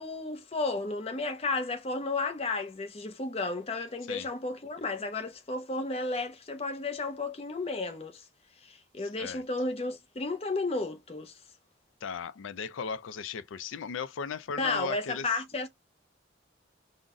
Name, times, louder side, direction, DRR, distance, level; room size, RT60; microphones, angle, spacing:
voice 1, 0.0-8.2 8.7-11.3 14.6-15.7, left 3 dB, 30° left, 0.6 m, -33 dB
voice 2, 9.0-9.4 12.0-15.3, left 6 dB, 90° left, 0.4 m, -37 dB
3.8 x 2.1 x 3.5 m
head